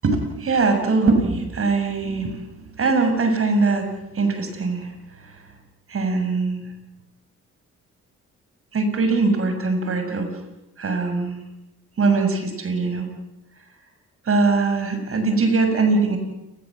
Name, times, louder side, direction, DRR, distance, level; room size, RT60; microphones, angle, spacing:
voice 1, 0.0-3.9 4.1-4.9 5.2-5.3 5.9-6.6 8.7-10.3 10.8-11.4 12.0-13.1 14.2-16.2, right 3 dB, 45° right, 6 dB, 6.8 m, -21 dB
29.5 x 20.5 x 7.7 m, 0.96 s
cardioid pair, 90°, 30 cm